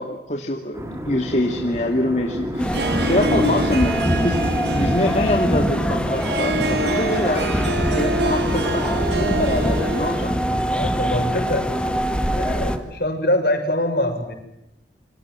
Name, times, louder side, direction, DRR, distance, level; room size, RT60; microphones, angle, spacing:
voice 1, 0.0-10.4, left 1 dB, 40° left, 3 dB, 2.5 m, -25 dB
sound 1, 0.7-12.8, equal, 15° right, 3.6 m, -31 dB
Harp, 2.5-10.4, right 1 dB, 75° right, 2.5 m, -26 dB
sound 2, 2.6-12.8, equal, 5° left, 1.9 m, -24 dB
voice 2, 2.9-3.5 10.7-11.7 12.3-14.3, left 1 dB, 60° left, 6 dB, 6.5 m, -24 dB
28.5 x 26.0 x 7.7 m, 0.85 s
head